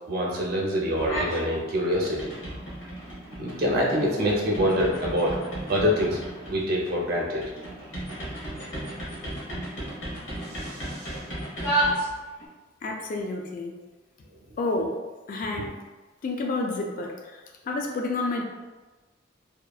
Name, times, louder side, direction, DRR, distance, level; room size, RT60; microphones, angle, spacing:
voice 1, 0.1-2.3 3.4-5.4 5.7-6.2 6.5-7.4 10.6-11.1, equal, 55° right, -2 dB, 0.6 m, -25 dB
sound 1, 1.0-1.5 1.8-12.5, right 1 dB, 85° left, 1.0 m, -33 dB
voice 2, 12.8-13.7 14.6-15.0 15.3-15.7 16.2-17.4 17.6-18.4, left 2 dB, 45° left, 1 dB, 0.3 m, -29 dB
2.8 x 2.2 x 2.3 m, 1.2 s
head